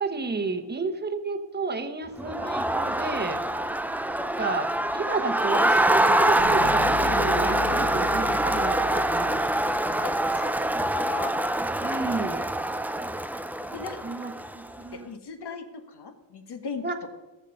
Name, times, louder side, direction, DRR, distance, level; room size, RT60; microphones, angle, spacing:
voice 1, 0.0-3.4 4.2-9.5 11.8-12.4 14.0-15.1 16.8-17.0, right 4 dB, 20° right, 8 dB, 1.1 m, -32 dB
Crowd, 2.2-14.7, right 1 dB, 5° right, 0.3 m, -25 dB
sound 1, 6.4-10.2, left 4 dB, 40° left, 1.0 m, -36 dB
voice 2, 11.1-11.4 13.7-14.0 14.9-16.9, left 5 dB, 60° left, 6 dB, 1.6 m, -37 dB
18.0 x 7.1 x 5.4 m, 1.1 s
wide cardioid pair, 125°, 45 cm